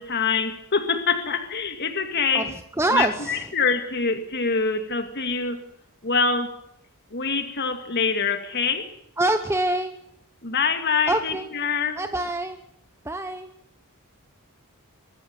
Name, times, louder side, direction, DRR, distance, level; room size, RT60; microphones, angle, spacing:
voice 1, 0.0-2.6 2.9-5.6 6.0-6.5 7.1-8.9 10.4-12.0, left 5 dB, 50° left, 7 dB, 2.3 m, -25 dB
voice 2, 2.8-3.4 9.2-9.9 11.1-11.5 12.0-12.6 13.0-13.5, right 2 dB, 10° right, 8 dB, 1.1 m, -25 dB
24.5 x 13.5 x 9.4 m, 0.72 s
head